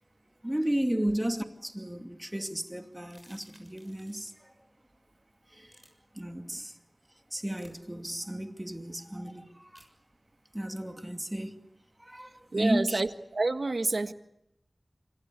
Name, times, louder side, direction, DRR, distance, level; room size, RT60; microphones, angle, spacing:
voice 1, 0.4-4.5 5.5-5.8 6.1-6.8 7.3-9.8 10.5-11.6 12.0-13.0, right 1 dB, 15° right, 2.5 m, -33 dB
sound 1, 3.0-4.4 5.7-5.9 7.5-7.8 9.7-9.9, equal, 5° left, 6.5 m, -58 dB
voice 2, 12.5-14.1, right 3 dB, 70° right, 1.5 m, -28 dB
27.0 x 25.0 x 8.2 m
wide cardioid pair, 60°, 0 cm